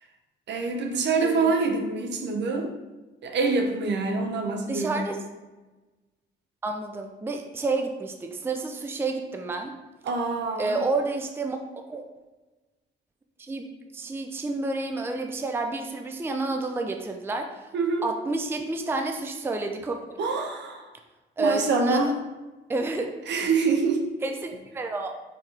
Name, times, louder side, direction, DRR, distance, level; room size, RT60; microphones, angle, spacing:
voice 1, 0.5-2.7 3.2-5.0 10.0-10.8 17.7-18.1 20.2-20.9 21.4-22.1 23.3-24.0, right 4 dB, 60° right, 4 dB, 0.7 m, -25 dB
voice 2, 4.7-5.2 6.6-9.8 10.6-11.6 11.9-12.0 13.4-17.6 18.0-20.0 21.4-22.1 22.7-23.1 24.2-25.1, right 3 dB, 10° right, 4 dB, 0.4 m, -29 dB
4.5 x 3.6 x 3.2 m, 1.2 s
cardioid pair, 90°, 20 cm